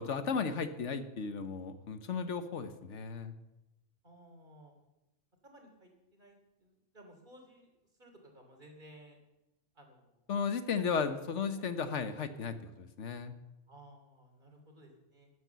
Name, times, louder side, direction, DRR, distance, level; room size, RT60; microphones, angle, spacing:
voice 1, 0.0-3.3 10.3-13.3, left 5 dB, 80° left, 10 dB, 1.4 m, -35 dB
voice 2, 4.0-4.7 5.4-9.2 9.7-10.3 10.7-11.2 11.5-11.7 13.7-15.3, right 1 dB, 45° right, 3 dB, 3.1 m, -57 dB
12.5 x 11.0 x 6.9 m, 0.97 s
omnidirectional pair, 1.2 m